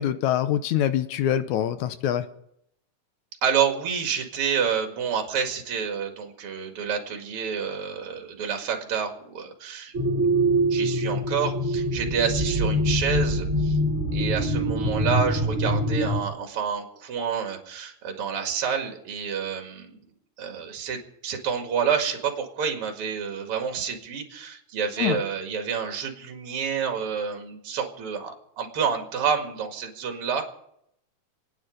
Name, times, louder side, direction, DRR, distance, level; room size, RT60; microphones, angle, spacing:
voice 1, 0.0-2.3 25.0-25.2, left 10 dB, 75° left, 11 dB, 2.1 m, -24 dB
voice 2, 3.4-9.9 10.7-13.8 14.1-20.0 20.4-30.4, right 7 dB, 45° right, 4 dB, 2.7 m, -28 dB
sound 1, 9.9-16.2, equal, 25° right, 2.8 m, -24 dB
28.0 x 9.8 x 5.2 m, 0.75 s
omnidirectional pair, 3.7 m